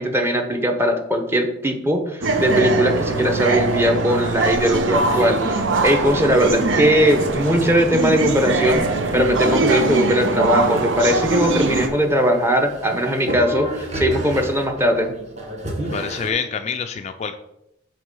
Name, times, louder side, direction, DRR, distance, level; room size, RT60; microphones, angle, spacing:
voice 1, 0.0-15.1, equal, 15° right, 4 dB, 0.8 m, -19 dB
sound 1, 2.2-11.9, right 3 dB, 80° right, 0.8 m, -22 dB
sound 2, 10.8-16.3, right 1 dB, 40° right, 1.3 m, -31 dB
voice 2, 15.9-17.4, left 6 dB, 35° left, 7 dB, 0.3 m, -26 dB
7.6 x 2.9 x 5.4 m, 0.84 s
head